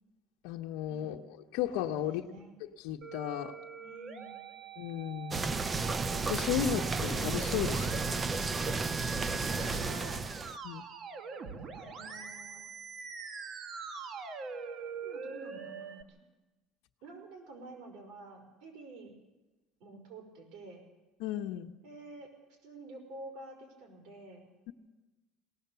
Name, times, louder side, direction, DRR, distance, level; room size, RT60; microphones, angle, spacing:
voice 1, 0.4-1.2 1.5-2.2 2.8-3.6 4.8-5.6 6.3-8.2 10.6-10.8 21.2-21.7, left 10 dB, 80° left, 1 dB, 1.1 m, -34 dB
voice 2, 2.0-2.5 3.8-4.4 9.2-10.2 11.7-12.6 15.0-16.2 17.0-19.1 19.8-20.8 21.8-24.5, right 2 dB, 70° right, 4 dB, 5.0 m, -49 dB
Musical instrument, 3.0-16.0, right 5 dB, 40° right, 1.3 m, -43 dB
sound 1, 5.3-10.6, right 4 dB, 20° right, 0.6 m, -33 dB
22.0 x 18.0 x 7.0 m, 1.1 s
cardioid pair, 150°, 0 cm